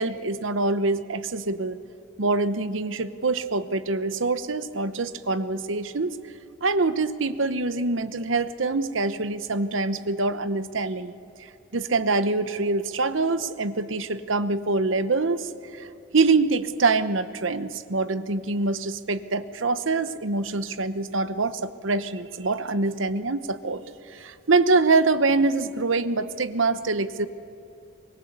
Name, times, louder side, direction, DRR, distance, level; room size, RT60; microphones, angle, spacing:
voice 1, 0.0-1.8 2.2-6.2 6.6-11.1 11.7-15.9 16.1-23.8 24.1-27.3, right 3 dB, 80° right, 13 dB, 1.0 m, -25 dB
23.5 x 20.5 x 8.2 m, 2.8 s
head